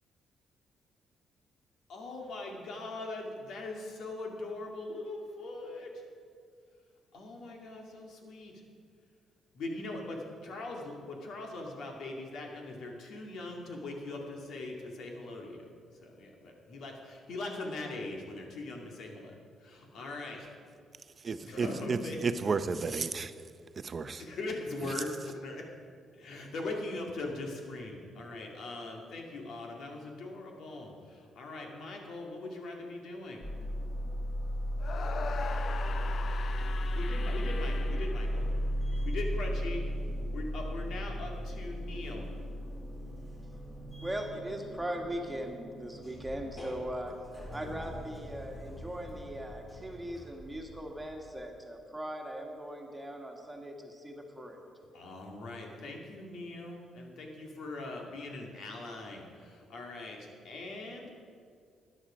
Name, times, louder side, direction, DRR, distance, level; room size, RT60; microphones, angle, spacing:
voice 1, 1.9-5.9 7.1-8.5 9.5-15.6 16.0-19.3 19.6-20.5 21.5-22.3 24.2-25.1 25.4-25.6 26.1-33.4 37.0-38.4 39.0-39.8 40.3-42.3 54.9-61.1, left 2 dB, 70° left, 2.3 m, -41 dB
voice 2, 21.2-23.3 23.8-24.3 24.8-25.0, right 4 dB, 40° right, 0.6 m, -33 dB
sound 1, 33.4-51.4, equal, 20° left, 3.4 m, -36 dB
sound 2, 34.8-39.0, left 5 dB, 55° left, 0.6 m, -41 dB
voice 3, 44.0-47.1 47.5-54.6, equal, 10° right, 1.8 m, -39 dB
13.0 x 10.0 x 5.1 m
cardioid pair, 90°, 0 cm